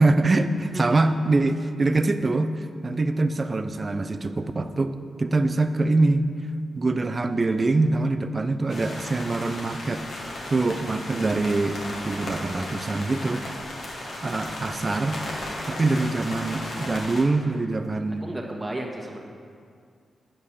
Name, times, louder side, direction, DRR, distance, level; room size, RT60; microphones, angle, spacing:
voice 1, 0.0-6.3 6.7-10.0 10.5-11.8 12.0-13.4 14.2-15.2 15.6-18.2, right 2 dB, 40° right, 10 dB, 0.5 m, -24 dB
sound 1, 8.7-17.2, left 1 dB, 70° left, 1.7 m, -35 dB
voice 2, 14.2-14.5 18.2-19.2, right 1 dB, 20° right, -1 dB, 1.6 m, -34 dB
8.7 x 5.5 x 6.3 m, 2.2 s
cardioid pair, 65°, 0 cm